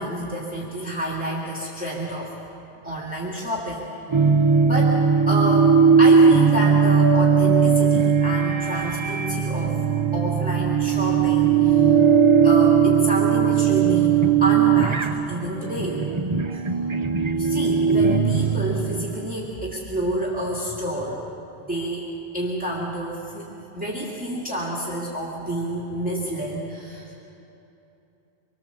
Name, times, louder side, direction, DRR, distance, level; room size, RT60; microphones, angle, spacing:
voice 1, 0.0-2.4 2.8-3.9 4.6-9.8 10.1-11.8 12.4-16.3 16.8-16.9 17.3-21.2 21.7-22.0 22.3-23.5 23.7-27.2, right 1 dB, 5° right, -5 dB, 2.8 m, -29 dB
sound 1, 4.1-19.3, right 6 dB, 35° right, 0.6 m, -19 dB
26.0 x 22.5 x 7.2 m, 2.9 s
omnidirectional pair, 1.2 m